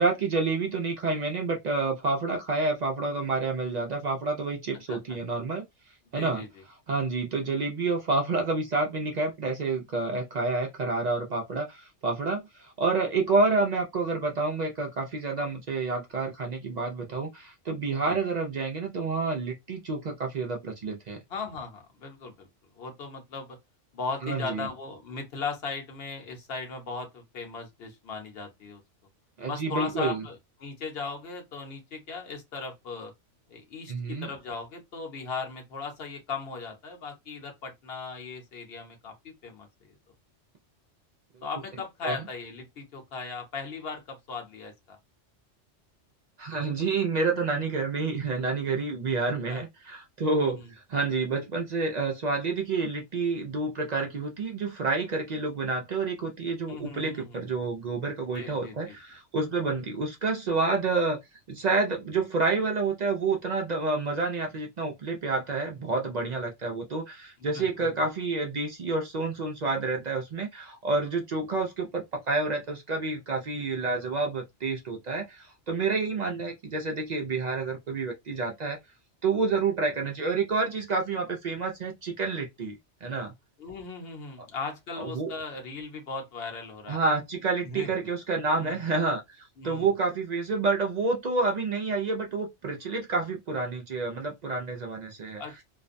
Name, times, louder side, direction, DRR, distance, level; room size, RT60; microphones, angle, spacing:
voice 1, 0.0-5.6 6.1-6.4 6.9-21.2 24.2-24.7 29.4-30.2 33.9-34.3 42.0-42.2 46.4-61.2 61.5-78.8 79.2-83.3 85.0-85.3 86.9-95.4, right 3 dB, 60° right, 0.4 m, -29 dB
voice 2, 6.1-6.5 17.9-18.2 21.3-22.5 22.7-23.6 23.9-28.8 29.5-33.1 33.5-39.1 39.4-39.7 41.4-45.0 49.2-49.6 50.4-50.7 56.7-57.4 58.3-59.0 67.4-68.0 83.6-87.0 87.6-87.9 88.6-88.8 89.6-89.9 95.4-95.6, left 4 dB, 60° left, 0.9 m, -38 dB
2.5 x 2.1 x 2.5 m
omnidirectional pair, 1.2 m